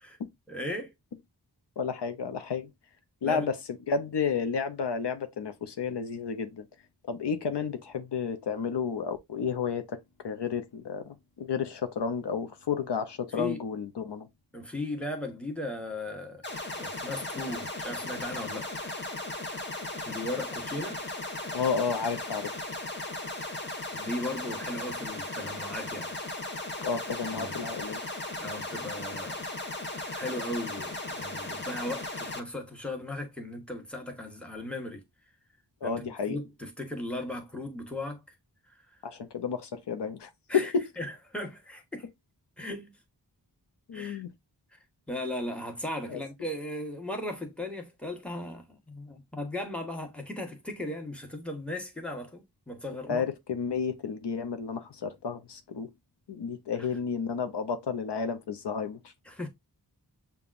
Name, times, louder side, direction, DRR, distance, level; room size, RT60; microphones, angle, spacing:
voice 1, 0.5-0.9 3.2-3.5 13.3-13.6 14.5-16.4 16.7-18.7 20.1-21.0 23.9-26.1 27.3-27.6 28.4-29.4 30.1-35.1 35.8-38.2 40.5-42.1 42.6-43.0 43.9-44.2 44.7-44.8 45.1-53.2 59.3-59.5, left 1 dB, 5° left, 1.0 m, -37 dB
voice 2, 1.8-2.7 3.2-6.7 7.1-14.3 21.5-22.5 26.8-28.0 35.8-36.4 39.0-40.9 43.9-44.3 46.1-46.2 53.1-55.9 56.3-59.1, left 6 dB, 85° left, 0.6 m, -31 dB
sound 1, 16.4-32.4, left 2 dB, 25° left, 0.9 m, -37 dB
6.9 x 2.3 x 2.4 m
wide cardioid pair, 65°, 40 cm